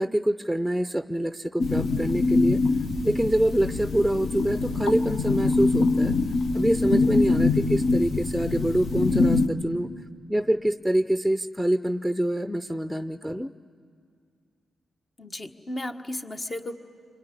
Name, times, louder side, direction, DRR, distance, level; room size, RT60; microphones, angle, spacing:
voice 1, 0.0-2.6 3.0-6.1 6.5-9.9 10.3-13.5, right 1 dB, ahead, 10 dB, 0.6 m, -25 dB
sound 1, 1.6-9.5, left 3 dB, 70° left, 1.2 m, -24 dB
voice 2, 15.2-16.8, left 1 dB, 40° left, 5 dB, 1.4 m, -34 dB
25.0 x 22.5 x 10.0 m, 2.3 s
hypercardioid pair, 40°, 0 cm